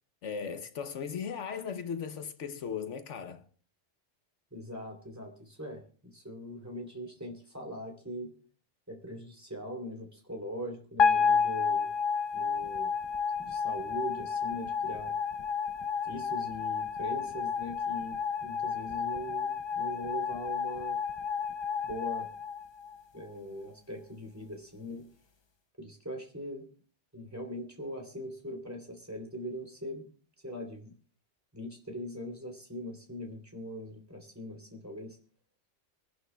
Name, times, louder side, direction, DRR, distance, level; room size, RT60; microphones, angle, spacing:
voice 1, 0.2-3.5, left 6 dB, 75° left, 1.1 m, -37 dB
voice 2, 4.5-8.3 8.9-11.9 12.3-12.9 13.4-15.1 16.0-21.0 21.8-22.3 23.1-25.0 25.8-26.7 27.1-30.1 30.4-30.9 31.5-35.2, equal, 15° right, 3.1 m, -41 dB
sound 1, 11.0-23.3, left 6 dB, 40° left, 0.4 m, -31 dB
26.5 x 11.0 x 2.3 m
omnidirectional pair, 1.2 m